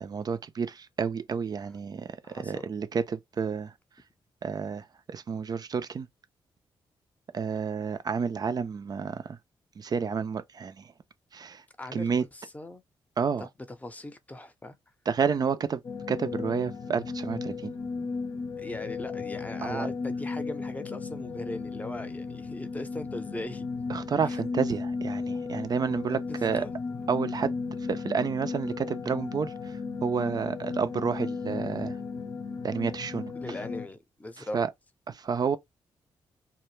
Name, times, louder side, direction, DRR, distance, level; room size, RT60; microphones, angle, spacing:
voice 1, 0.0-3.7 4.4-6.1 7.3-9.4 9.8-10.9 11.3-11.6 11.9-12.2 13.2-13.5 15.1-15.8 16.1-17.7 19.6-19.9 23.9-26.7 27.1-27.5 27.9-32.0 32.6-33.3 34.4-34.7 35.1-35.6, right 6 dB, 45° right, 0.4 m, -30 dB
voice 2, 2.2-2.7 11.8-12.8 13.4-13.5 13.8-14.8 18.6-23.6 26.1-26.8 33.3-34.6, left 1 dB, 15° left, 0.6 m, -39 dB
sound 1, 15.8-33.9, left 4 dB, 60° left, 0.7 m, -35 dB
2.1 x 2.1 x 3.1 m
supercardioid pair, 55°, 9 cm